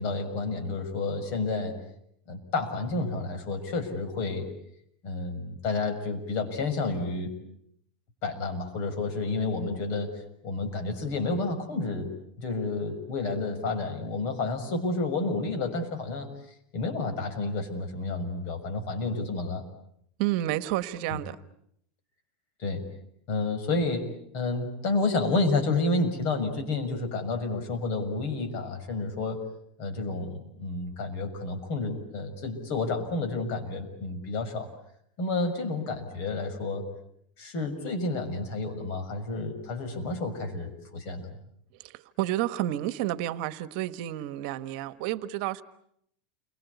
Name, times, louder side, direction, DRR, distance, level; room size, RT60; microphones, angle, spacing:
voice 1, 0.0-1.8 2.3-4.5 5.0-7.3 8.2-12.1 12.4-16.3 16.7-19.6 21.1-21.2 22.6-22.8 23.3-29.4 29.8-34.7 35.2-36.9 37.4-41.3, left 3 dB, 50° left, 6 dB, 6.5 m, -30 dB
voice 2, 20.2-21.4 41.8-45.6, right 14 dB, 55° right, 13 dB, 1.4 m, -30 dB
29.5 x 24.0 x 8.3 m, 0.72 s
supercardioid pair, 145°, 5 cm